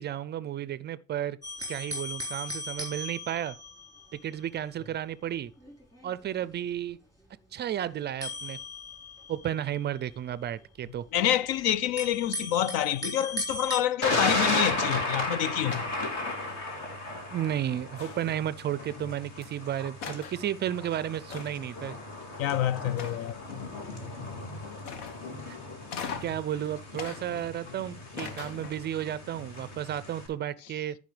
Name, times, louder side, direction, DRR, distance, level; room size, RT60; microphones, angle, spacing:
voice 1, 0.0-1.4 1.7-3.6 4.2-5.5 6.0-7.0 7.5-8.6 9.3-11.0 17.3-22.0 25.5-25.6 26.2-31.0, right 11 dB, 30° right, 0.4 m, -33 dB
sound 1, 1.4-4.4 4.7-4.9 5.6-6.6 8.2-10.1 10.9-11.0 12.0-13.8, left 1 dB, 10° left, 4.1 m, -38 dB
voice 2, 11.1-15.8 22.4-23.4, left 11 dB, 70° left, 0.7 m, -27 dB
Thunder, 14.0-30.3, left 2 dB, 55° left, 2.8 m, -35 dB
sound 2, 14.1-14.6 15.7-16.8 18.0-18.5 19.4-19.5 20.0-20.4 21.3-21.8 23.0-23.5 24.8-25.4 25.9-26.5 27.0-27.7 28.2-28.9, left 6 dB, 90° left, 1.3 m, -41 dB
14.0 x 5.2 x 3.3 m
supercardioid pair, 115°, 34 cm